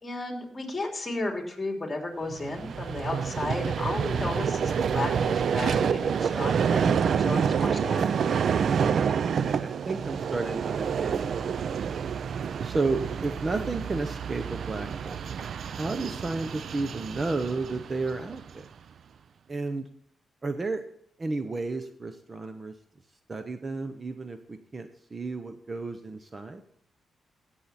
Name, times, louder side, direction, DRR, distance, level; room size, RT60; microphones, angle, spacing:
voice 1, 0.0-8.0, left 2 dB, 20° left, 2 dB, 3.1 m, -33 dB
Vehicle, 2.3-18.6, right 7 dB, 65° right, 0.4 m, -28 dB
voice 2, 8.7-11.8 12.6-15.2 15.8-18.7 19.5-19.9 20.4-20.8 21.2-22.7 23.3-26.6, right 3 dB, 30° right, 8 dB, 0.8 m, -32 dB
16.5 x 7.4 x 4.2 m, 0.67 s
cardioid pair, 100°, 0 cm